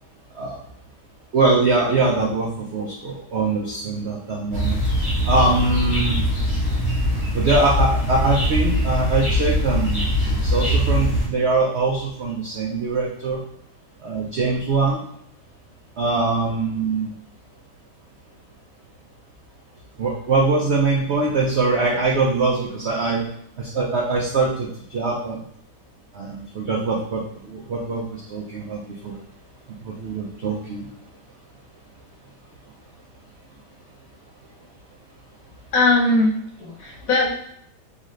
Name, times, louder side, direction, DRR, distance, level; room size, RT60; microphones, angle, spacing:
voice 1, 1.3-4.8 5.3-6.2 7.3-10.1 10.4-13.4 14.0-15.0 16.0-17.1 20.0-23.3 23.6-25.4 26.1-29.2 29.8-30.9, right 3 dB, 70° right, -2 dB, 0.6 m, -22 dB
sound 1, 4.5-11.3, equal, 15° left, 1.4 m, -22 dB
voice 2, 35.7-37.3, left 2 dB, 55° left, -2 dB, 1.2 m, -20 dB
3.9 x 3.1 x 3.1 m, 0.68 s
omnidirectional pair, 1.9 m